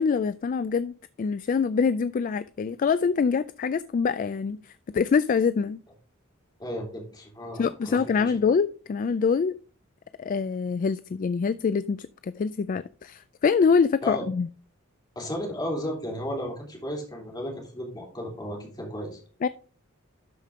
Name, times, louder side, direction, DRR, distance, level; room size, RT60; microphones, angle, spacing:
voice 1, 0.0-5.8 7.6-9.5 10.2-14.5 19.4-19.5, left 5 dB, 40° left, 0.3 m, -25 dB
voice 2, 6.6-8.3 14.0-14.2 15.2-19.2, equal, 20° left, 3.4 m, -34 dB
12.0 x 5.2 x 3.6 m
head